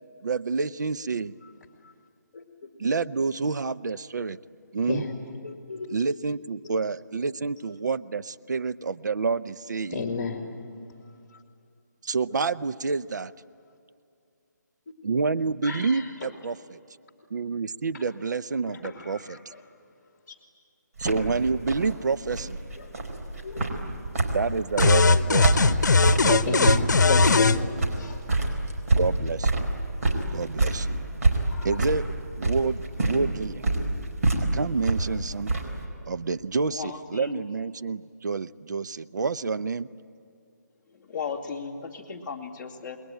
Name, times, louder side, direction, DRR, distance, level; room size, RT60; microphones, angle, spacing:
voice 1, 0.2-1.3 2.8-4.4 4.7-5.0 5.9-10.0 12.0-13.3 15.0-16.8 17.3-19.4 21.0-22.6 24.3-25.9 26.2-26.6 29.0-29.7 30.3-31.0 31.6-32.0 32.4-33.7 34.5-35.5 36.1-39.9, right 4 dB, 70° right, 14 dB, 0.7 m, -28 dB
voice 2, 5.4-6.0 9.9-10.5 11.3-11.4 12.3-12.4 15.6-16.3 17.9-18.1 18.7-19.6 20.3-20.4 22.8-23.0 23.4-23.6 25.0-25.2 26.5-28.3 31.4-31.8 32.6-32.7, left 4 dB, 35° left, 3 dB, 2.3 m, -33 dB
sound 1, 21.0-35.8, right 2 dB, 50° right, 4.6 m, -26 dB
sound 2, 24.8-27.6, left 4 dB, 70° left, 1.0 m, -19 dB
voice 3, 36.7-37.5 40.9-43.0, left 6 dB, 15° left, -5 dB, 2.3 m, -36 dB
28.5 x 21.5 x 9.2 m, 2.5 s
hypercardioid pair, 160°, 10 cm